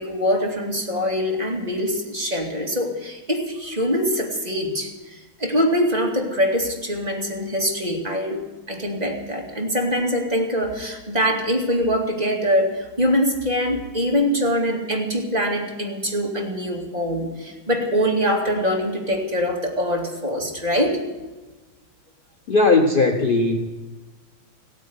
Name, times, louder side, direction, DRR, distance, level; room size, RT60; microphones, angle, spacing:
voice 1, 0.0-21.0, equal, 20° right, 0 dB, 2.4 m, -23 dB
voice 2, 22.5-23.7, left 3 dB, 60° left, 3 dB, 0.5 m, -18 dB
16.0 x 9.2 x 9.5 m, 1.2 s
omnidirectional pair, 2.3 m